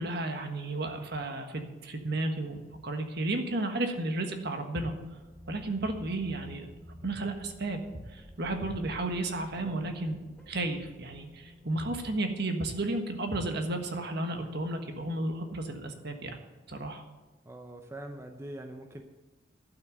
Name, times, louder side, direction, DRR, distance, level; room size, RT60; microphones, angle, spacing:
voice 1, 0.0-4.9 5.5-6.7 7.0-7.8 8.1-10.2 10.5-16.3 16.7-17.0, right 2 dB, 55° right, 5 dB, 1.4 m, -33 dB
sound 1, 4.8-13.3, left 1 dB, ahead, 2.9 m, -52 dB
voice 2, 9.6-10.0 17.5-19.0, right 1 dB, 15° right, 4 dB, 0.7 m, -43 dB
12.0 x 6.1 x 9.0 m, 1.2 s
head